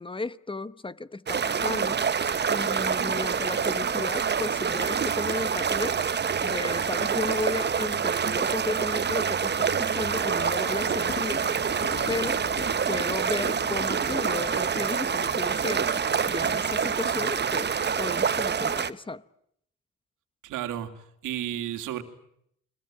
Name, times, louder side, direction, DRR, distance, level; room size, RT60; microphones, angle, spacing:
voice 1, 0.0-2.1 2.5-6.0 6.4-11.5 12.1-12.4 12.9-17.7 18.0-19.2, left 3 dB, 15° left, 1.0 m, -34 dB
sound 1, 1.3-18.9, right 6 dB, 35° right, 1.1 m, -26 dB
Thunder, 10.9-15.4, left 5 dB, 35° left, 1.7 m, -42 dB
voice 2, 20.4-22.0, right 12 dB, 90° right, 2.7 m, -33 dB
30.0 x 21.0 x 9.1 m
cardioid pair, 90°, 30 cm